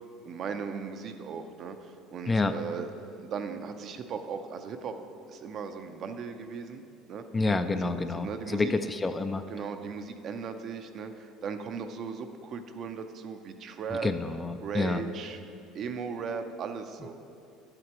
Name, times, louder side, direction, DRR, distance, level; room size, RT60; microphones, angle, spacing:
voice 1, 0.3-1.7 2.1-2.9 3.3-4.9 5.3-6.8 7.1-7.2 7.8-8.7 9.5-11.1 11.4-14.1 14.6-15.4 15.7-17.1, right 6 dB, 50° right, 7 dB, 0.6 m, -37 dB
voice 2, 7.3-8.3 8.5-8.7 9.0-9.4 14.0-15.0, left 3 dB, 20° left, 9 dB, 0.4 m, -28 dB
9.9 x 7.7 x 3.0 m, 2.7 s
supercardioid pair, 95°, 0 cm